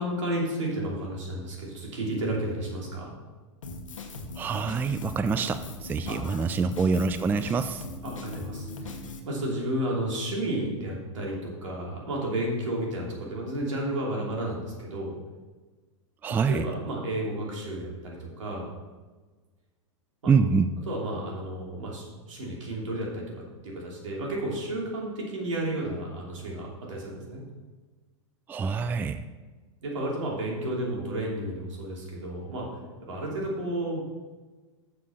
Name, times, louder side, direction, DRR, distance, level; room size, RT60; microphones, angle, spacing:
voice 1, 0.0-3.1 6.1-6.2 8.0-8.9 9.2-15.2 16.3-18.7 20.2-20.3 20.9-27.4 29.8-32.7 33.0-34.0, right 1 dB, 75° right, -2 dB, 2.9 m, -32 dB
Drum kit, 3.6-9.2, left 2 dB, 85° left, 1.2 m, -39 dB
voice 2, 4.4-7.8 16.2-16.6 20.3-20.7 28.5-29.2, right 5 dB, 10° right, 10 dB, 0.3 m, -25 dB
7.1 x 6.7 x 5.5 m, 1.3 s
hypercardioid pair, 105°, 16 cm